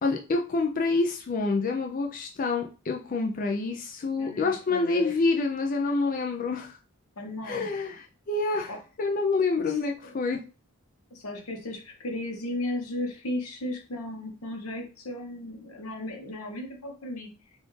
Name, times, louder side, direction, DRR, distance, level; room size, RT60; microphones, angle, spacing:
voice 1, 0.0-6.8 7.4-8.7 9.0-10.4, left 3 dB, 40° left, 2 dB, 0.4 m, -27 dB
voice 2, 4.2-5.1 7.2-7.8 8.7-8.8 9.7-10.1 11.1-17.3, left 1 dB, 80° left, 2 dB, 1.0 m, -35 dB
4.0 x 2.5 x 3.1 m, 0.34 s
head